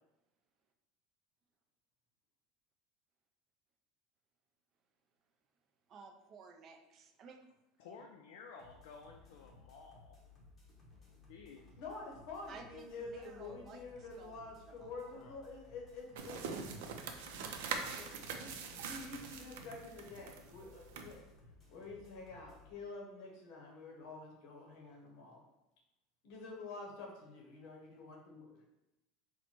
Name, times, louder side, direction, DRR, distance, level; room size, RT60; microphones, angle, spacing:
voice 1, 5.9-7.4 12.5-13.9 14.2-15.2, right 4 dB, 30° right, 4 dB, 0.4 m, -55 dB
voice 2, 7.8-10.2 11.3-11.8 15.1-15.4, left 5 dB, 75° left, 2 dB, 0.4 m, -54 dB
sound 1, 8.6-22.7, left 3 dB, 15° left, 0.8 m, -61 dB
voice 3, 11.8-16.4 16.8-17.1 17.9-21.2 21.7-25.4 26.2-28.6, left 3 dB, 50° left, 0 dB, 0.7 m, -48 dB
sound 2, 16.1-21.1, right 5 dB, 85° right, 0.5 m, -43 dB
4.3 x 2.1 x 4.2 m, 0.97 s
cardioid pair, 180°, 0 cm